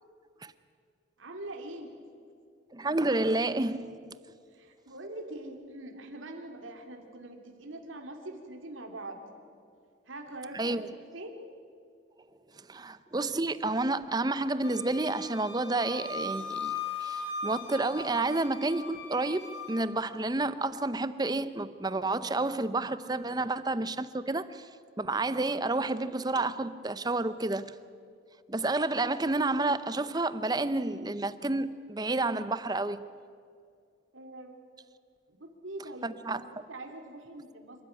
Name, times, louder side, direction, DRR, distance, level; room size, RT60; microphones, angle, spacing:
voice 1, 1.2-2.0 4.5-9.2 10.1-11.4 34.1-34.6 35.3-36.3 36.7-37.8, right 1 dB, 85° right, 2.7 m, -43 dB
voice 2, 2.7-4.0 10.5-10.9 12.6-24.7 25.0-27.7 28.5-33.1 36.0-36.5, right 2 dB, 20° right, 0.6 m, -30 dB
Wind instrument woodwind instrument, 14.6-19.8, left 4 dB, 60° left, 4.0 m, -39 dB
26.5 x 13.0 x 9.8 m
head